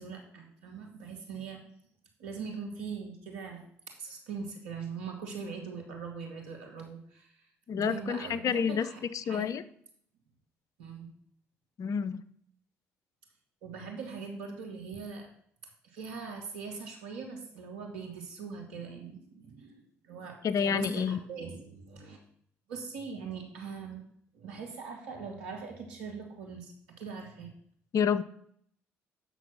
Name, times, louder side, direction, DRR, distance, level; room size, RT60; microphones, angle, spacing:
voice 1, 0.0-1.6 2.2-3.6 4.0-7.5 7.8-9.5 10.8-11.1 13.6-15.3 15.8-22.2 22.7-24.0 24.3-27.5, right 5 dB, 85° right, 2 dB, 1.9 m, -41 dB
voice 2, 7.7-8.9 9.1-9.6 11.8-12.2 20.4-21.2 27.9-28.2, left 7 dB, 55° left, 16 dB, 0.7 m, -29 dB
9.1 x 6.2 x 6.0 m, 0.65 s
hypercardioid pair, 50°, 7 cm